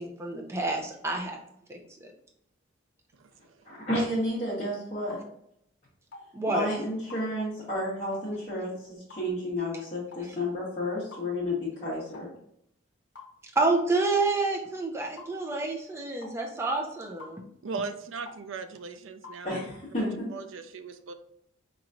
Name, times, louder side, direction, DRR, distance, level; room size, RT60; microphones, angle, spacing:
voice 1, 0.0-1.4 1.7-2.1 6.3-6.7 10.2-10.4 13.6-17.4, right 3 dB, 15° right, 0 dB, 0.5 m, -29 dB
voice 2, 3.1-3.6 17.6-19.7 20.0-20.1 20.3-21.1, right 4 dB, 80° right, 8 dB, 0.4 m, -38 dB
voice 3, 3.6-5.2 6.5-12.3 19.4-20.3, left 1 dB, 30° left, -11 dB, 1.2 m, -31 dB
sound 1, 5.1-5.3 6.1-6.3 7.1-7.3 8.1-8.3 9.1-9.3 10.1-10.3 11.1-11.3 12.1-12.3 13.1-13.3 14.2-14.3 15.2-15.3 16.2-16.4 17.2-17.4 18.3-18.4 19.2-19.4, left 3 dB, 75° left, 0.8 m, -46 dB
4.5 x 3.0 x 2.5 m, 0.74 s
head